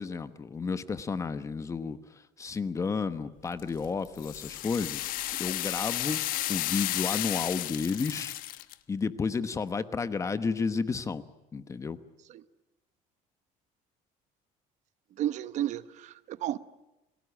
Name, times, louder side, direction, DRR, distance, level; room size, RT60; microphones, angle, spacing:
voice 1, 0.0-5.1 5.4-6.2 6.5-8.3 8.9-11.2 11.5-12.0, left 5 dB, 20° left, 1.1 m, -32 dB
sound 1, 3.6-8.7, left 16 dB, 70° left, 1.3 m, -33 dB
voice 2, 15.2-16.6, right 12 dB, 50° right, 1.0 m, -32 dB
29.5 x 19.5 x 10.0 m
cardioid pair, 165°, 15 cm